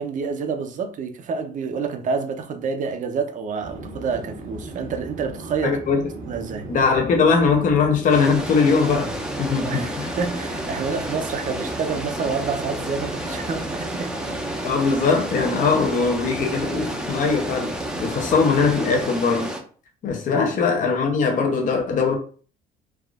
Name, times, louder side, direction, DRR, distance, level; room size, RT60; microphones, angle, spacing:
voice 1, 0.0-5.8 6.3-6.7 9.6-14.1 20.3-20.5, right 5 dB, 50° right, 0.6 m, -28 dB
Chatter / Fixed-wing aircraft airplane, 3.6-19.1, right 2 dB, 85° right, 1.1 m, -37 dB
voice 2, 5.6-6.0 6.7-10.2 14.6-17.7 18.0-19.6 20.0-22.1, left 5 dB, 50° left, 0.7 m, -21 dB
sound 1, 8.1-19.6, right 1 dB, 5° right, 0.5 m, -31 dB
3.4 x 2.4 x 2.4 m
cardioid pair, 110°, 17 cm